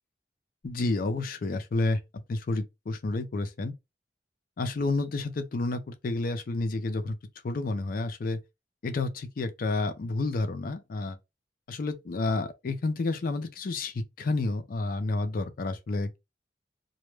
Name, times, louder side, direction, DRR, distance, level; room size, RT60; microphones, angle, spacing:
voice 1, 0.6-2.0 2.3-3.7 4.6-7.2 7.4-8.4 8.8-11.2 11.7-16.2, left 2 dB, 55° left, 0.4 m, -30 dB
2.2 x 2.0 x 3.1 m
head